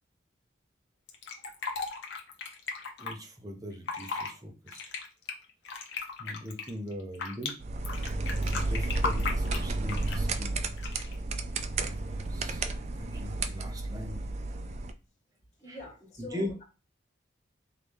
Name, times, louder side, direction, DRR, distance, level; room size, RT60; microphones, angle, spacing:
Fill (with liquid), 1.1-3.1 3.7-4.3 4.7-7.5 7.8-10.3 10.8-11.2, left 4 dB, 75° left, 0.9 m, -36 dB
voice 1, 3.0-4.9 6.2-7.5 8.5-11.1 11.9-14.2 15.7-15.8 16.2-16.5, equal, 20° right, 3 dB, 0.7 m, -41 dB
sound 1, 7.6-14.9, right 2 dB, 35° right, 0.3 m, -32 dB
voice 2, 15.6-16.6, left 2 dB, 35° left, -4 dB, 1.8 m, -45 dB
3.8 x 3.1 x 3.4 m, 0.32 s
head